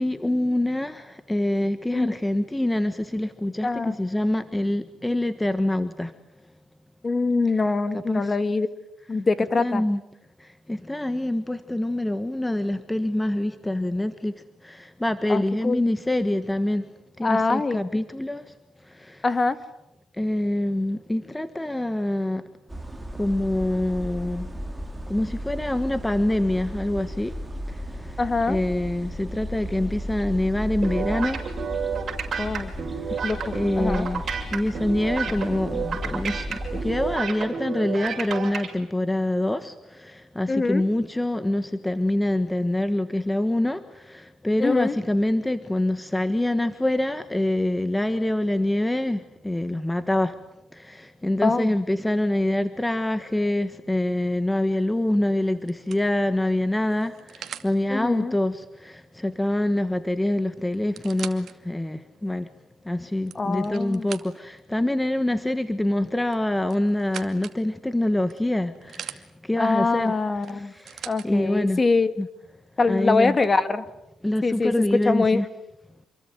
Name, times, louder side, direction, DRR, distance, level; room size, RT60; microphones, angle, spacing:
voice 1, 0.0-6.1 7.5-7.6 7.9-8.3 9.6-10.0 10.4-16.9 17.2-18.4 19.0-19.2 20.2-22.4 23.2-24.5 25.1-27.3 28.5-31.4 33.5-34.2 34.5-50.3 50.7-62.5 62.9-70.1 70.5-71.8 72.2-72.3 72.9-73.4 74.2-75.5, left 1 dB, 10° left, 11 dB, 1.4 m, -25 dB
voice 2, 3.6-4.0 7.0-8.7 9.1-9.8 15.3-15.8 17.2-17.8 19.2-19.6 28.2-28.6 32.4-32.7 33.2-34.1 40.5-40.8 44.6-44.9 51.4-51.7 57.9-58.3 63.4-64.1 69.6-70.7 71.1-72.1 72.8-73.8 74.4-74.7 75.1-75.4, left 3 dB, 30° left, 12 dB, 2.1 m, -24 dB
sound 1, 22.7-37.2, equal, 10° right, 3.7 m, -35 dB
sound 2, 30.8-38.7, right 6 dB, 50° right, 6.7 m, -30 dB
sound 3, 54.8-55.1 55.7-57.7 59.8-59.9 60.1-60.2 60.7-61.5 62.1-62.2 63.0-64.6 66.3-67.6 68.3-69.2 70.4-71.3 72.2-72.3, right 9 dB, 65° right, 2.3 m, -41 dB
28.0 x 22.5 x 9.5 m, 0.85 s
cardioid pair, 90°, 0 cm